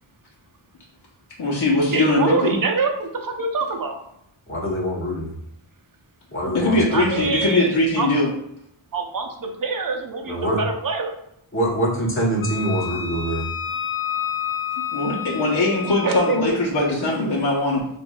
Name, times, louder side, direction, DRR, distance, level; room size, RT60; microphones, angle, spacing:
voice 1, 1.4-2.6 6.5-8.3 14.9-17.9, left 2 dB, 55° left, -5 dB, 0.9 m, -21 dB
voice 2, 1.9-4.0 6.9-7.7 8.0-8.1 8.9-11.1 16.0-16.4, right 4 dB, 45° right, 3 dB, 0.7 m, -25 dB
voice 3, 4.5-5.3 6.3-7.2 10.3-10.6 11.5-13.5, right 1 dB, 25° left, -3 dB, 1.1 m, -24 dB
Wind instrument woodwind instrument, 12.4-16.4, left 9 dB, 80° left, 0.7 m, -29 dB
6.1 x 2.6 x 2.3 m, 0.75 s
wide cardioid pair, 95°, 49 cm